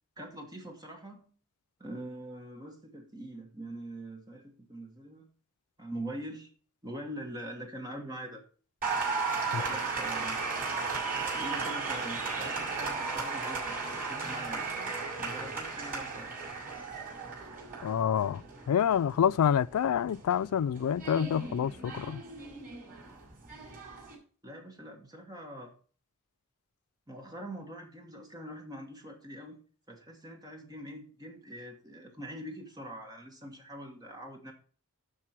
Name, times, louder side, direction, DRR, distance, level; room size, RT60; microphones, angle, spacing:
voice 1, 0.2-1.3 1.8-5.3 5.8-6.5 6.8-8.4 9.6-10.4 11.1-14.7 15.2-16.3 24.4-25.7 27.1-29.6 29.9-34.5, right 1 dB, 20° right, 1.5 m, -43 dB
Applause, 8.8-24.1, right 4 dB, 40° right, 5.5 m, -36 dB
voice 2, 17.8-22.2, left 8 dB, 90° left, 0.3 m, -27 dB
11.5 x 4.7 x 5.8 m
head